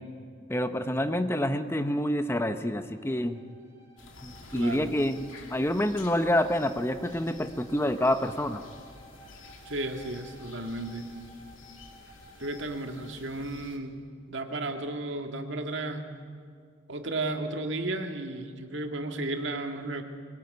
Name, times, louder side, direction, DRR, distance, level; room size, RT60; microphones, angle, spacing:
voice 1, 0.5-3.4 4.2-8.6, left 1 dB, 10° left, 9 dB, 0.8 m, -27 dB
Bowed string instrument, 2.8-13.2, right 1 dB, 15° right, 4.3 m, -56 dB
sound 1, 4.0-13.8, left 3 dB, 85° left, 2.6 m, -51 dB
voice 2, 4.5-4.9 9.7-11.1 12.4-14.0 14.3-16.0 16.9-20.0, right 2 dB, 70° right, 5 dB, 2.0 m, -33 dB
22.5 x 18.0 x 9.5 m, 2.2 s
head